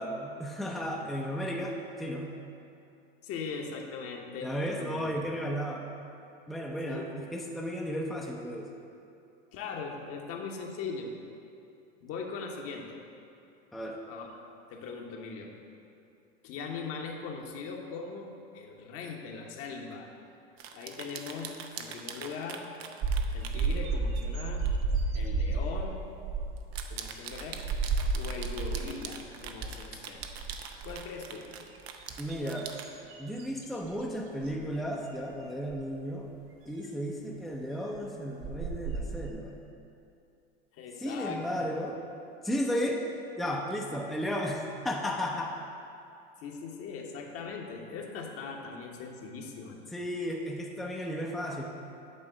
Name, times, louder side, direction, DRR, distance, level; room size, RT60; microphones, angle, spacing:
voice 1, 0.0-2.3 4.4-5.9 6.5-8.7 13.7-14.0 32.2-32.7 33.2-36.4 36.7-39.6 41.0-42.0 42.4-43.0 43.4-45.6 49.9-51.6, equal, ahead, -1 dB, 0.5 m, -34 dB
voice 2, 3.2-5.1 6.8-7.2 9.5-11.1 12.0-13.0 14.1-14.3 14.7-15.5 16.4-18.3 18.5-20.1 20.7-22.7 23.3-24.7 25.1-26.0 26.9-27.6 28.1-30.2 30.8-31.5 40.7-41.4 46.4-49.8, left 5 dB, 50° left, 1 dB, 1.1 m, -40 dB
sound 1, 20.6-23.8 24.6-24.8 25.2-25.3 26.6-32.9, right 7 dB, 80° right, 0.7 m, -43 dB
sound 2, 23.0-29.1 29.4-29.8 30.1-31.1 31.8-34.0 34.4-34.7 35.7-35.8 38.0-38.1 38.4-39.3, right 4 dB, 45° right, 0.9 m, -32 dB
8.8 x 3.5 x 6.5 m, 2.6 s
hypercardioid pair, 100°, 30 cm